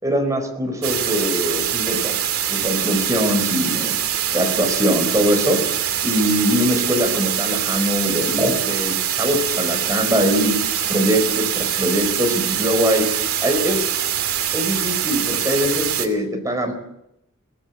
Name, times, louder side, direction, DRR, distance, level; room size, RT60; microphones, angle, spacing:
voice 1, 0.0-2.2 2.5-3.9 4.3-5.6 6.0-10.6 10.9-13.0 13.4-14.0 14.5-16.7, equal, 15° right, 4 dB, 4.4 m, -22 dB
sound 1, 0.8-16.1, right 10 dB, 75° right, 2.7 m, -23 dB
23.0 x 18.5 x 7.3 m, 0.84 s
head